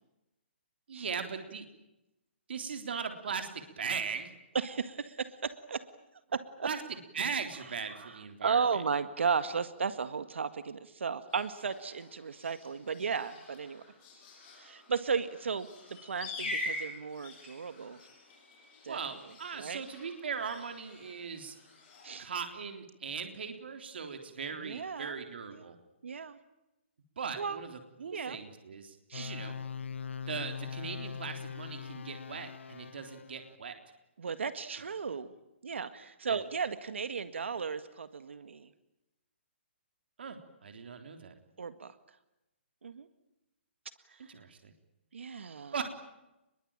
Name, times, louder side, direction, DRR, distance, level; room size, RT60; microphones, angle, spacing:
voice 1, 0.9-1.6 2.5-4.3 6.6-6.8 7.1-8.6 18.9-21.6 22.2-25.8 27.2-29.6 30.3-33.8 36.2-36.4 40.2-41.4 44.3-44.7 45.7-45.8, right 6 dB, 60° right, 5 dB, 3.7 m, -39 dB
voice 2, 4.5-5.9 6.3-6.7 8.0-13.8 14.6-18.0 18.8-19.0 19.6-19.8 22.0-22.3 24.6-25.2 25.5-25.7 26.0-26.4 27.4-27.6 28.1-28.4 29.1-29.3 34.2-35.3 35.6-38.7 41.6-41.9 42.8-43.1 44.1-44.3 45.1-45.7, right 5 dB, 80° right, 11 dB, 1.8 m, -35 dB
sound 1, 11.3-22.2, left 2 dB, 20° left, 7.0 m, -45 dB
sound 2, 29.1-33.6, left 6 dB, 80° left, 1.0 m, -41 dB
27.5 x 22.0 x 9.0 m, 0.94 s
hypercardioid pair, 175°, 6 cm